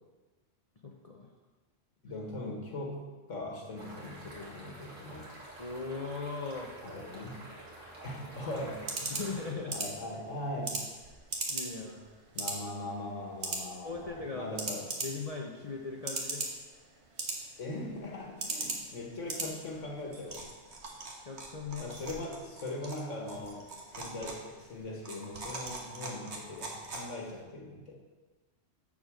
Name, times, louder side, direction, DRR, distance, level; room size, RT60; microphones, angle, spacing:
voice 1, 0.8-1.3 5.6-6.7 9.0-9.7 11.5-12.2 13.8-14.5 15.0-16.5 21.3-21.9, left 4 dB, 35° left, 0 dB, 0.7 m, -39 dB
voice 2, 2.0-3.0 3.3-5.3 6.8-7.4 8.0-8.8 9.7-10.9 12.3-14.9 17.6-20.5 21.8-27.9, left 1 dB, 85° left, 0 dB, 2.0 m, -40 dB
sound 1, 3.7-9.5, right 1 dB, 85° right, 2.1 m, -49 dB
sound 2, 8.1-27.4, right 3 dB, 65° right, 1.6 m, -41 dB
7.2 x 6.8 x 6.3 m, 1.2 s
omnidirectional pair, 1.3 m